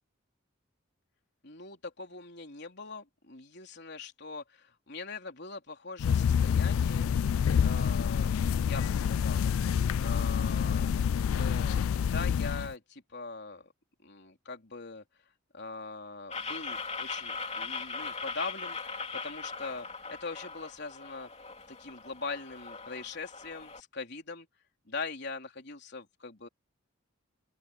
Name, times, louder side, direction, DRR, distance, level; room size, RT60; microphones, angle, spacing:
voice 1, 1.4-7.1 7.6-9.5 10.0-11.1 11.4-13.7 14.0-15.0 15.5-21.3 21.7-24.5 24.9-26.5, left 4 dB, 55° left, 3.8 m, -42 dB
sound 1, 6.0-12.7, left 7 dB, 90° left, 0.3 m, -27 dB
sound 2, 16.3-23.8, left 4 dB, 30° left, 3.1 m, -40 dB
open air
head